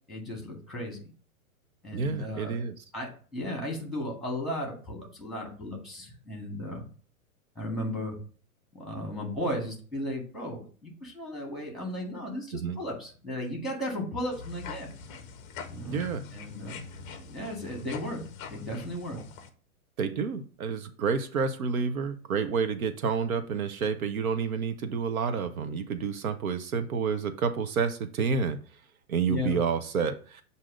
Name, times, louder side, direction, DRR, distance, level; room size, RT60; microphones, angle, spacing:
voice 1, 0.1-1.0 1.8-2.6 2.9-6.8 7.6-8.2 8.7-14.9 15.7-16.0 16.3-16.8 17.2-18.2 18.5-19.2 29.3-29.6, left 1 dB, ahead, 0 dB, 1.8 m, -35 dB
voice 2, 1.9-2.7 12.5-12.8 15.9-16.2 20.0-28.6 29.1-30.4, right 5 dB, 75° right, 10 dB, 0.8 m, -29 dB
sound 1, 14.3-19.5, left 4 dB, 20° left, 0.5 m, -43 dB
7.4 x 2.8 x 5.0 m, 0.42 s
hypercardioid pair, 140°, 43 cm